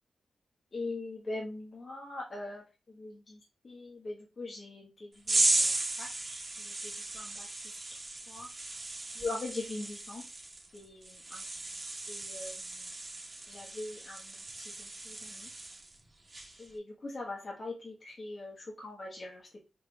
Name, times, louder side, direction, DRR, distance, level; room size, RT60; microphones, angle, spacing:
voice 1, 0.7-3.4 3.6-7.5 7.7-7.8 8.3-8.5 9.1-10.2 10.7-11.4 12.1-12.9 13.5-15.5 16.6-19.5, left 2 dB, 50° left, -3 dB, 1.3 m, -42 dB
sound 1, 5.3-16.0 16.3-16.7, right 2 dB, 35° right, 1.2 m, -35 dB
4.3 x 4.1 x 2.3 m, 0.29 s
cardioid pair, 65°, 0 cm